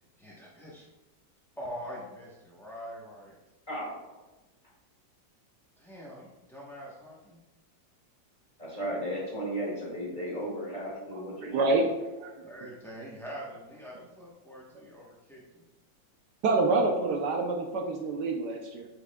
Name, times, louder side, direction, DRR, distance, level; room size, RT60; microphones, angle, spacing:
voice 1, 0.2-0.8 1.6-3.4 5.8-7.4 12.4-15.6, equal, 5° left, -6 dB, 0.4 m, -44 dB
voice 2, 3.7-4.0 8.6-11.8, equal, 25° left, -5 dB, 2.3 m, -35 dB
voice 3, 11.1-11.9 12.2-12.3 16.4-18.9, right 3 dB, 70° right, 3 dB, 1.2 m, -27 dB
8.4 x 6.0 x 2.2 m, 1.1 s
omnidirectional pair, 2.0 m